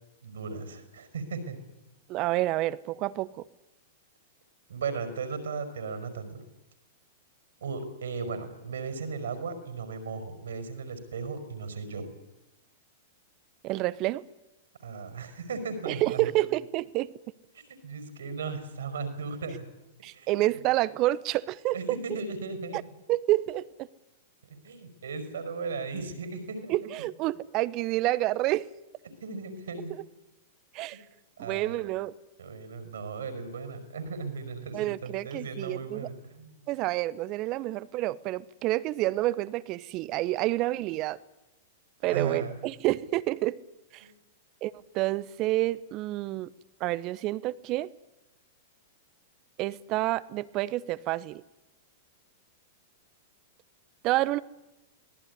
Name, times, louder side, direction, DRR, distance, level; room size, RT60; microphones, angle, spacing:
voice 1, 0.2-1.6 4.7-6.4 7.6-12.1 14.8-16.3 17.8-19.6 20.1-20.3 21.7-22.8 24.5-26.8 29.2-29.9 31.4-31.8 32.4-36.6 42.0-42.6 44.0-44.1, right 4 dB, 75° right, 9 dB, 5.2 m, -36 dB
voice 2, 2.1-3.3 13.6-14.3 15.9-17.1 20.0-22.2 22.7-22.8 23.1-23.6 26.7-28.6 30.7-31.0 31.4-32.1 34.7-36.1 36.7-41.2 42.0-43.6 43.9-44.0 44.6-46.5 46.8-47.9 49.6-51.4 54.0-54.4, right 17 dB, 40° right, 19 dB, 1.0 m, -28 dB
25.0 x 18.0 x 9.8 m, 0.97 s
figure-of-eight pair, 100°, 0 cm